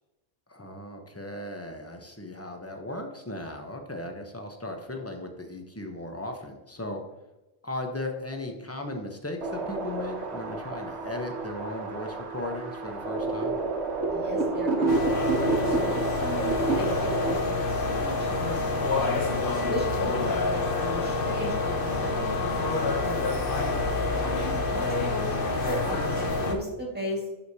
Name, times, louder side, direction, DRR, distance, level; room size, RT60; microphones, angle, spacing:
voice 1, 0.5-7.0 7.6-13.6 24.1-24.5, left 1 dB, 15° left, 3 dB, 0.8 m, -37 dB
sound 1, 9.4-17.3, right 3 dB, 85° right, 1.3 m, -29 dB
voice 2, 14.1-15.1 15.6-19.2 19.7-23.5 24.7-27.3, equal, 10° right, -2 dB, 1.9 m, -36 dB
sound 2, 14.9-26.5, left 3 dB, 55° left, 1.1 m, -27 dB
11.0 x 5.0 x 2.8 m, 1.0 s
omnidirectional pair, 1.1 m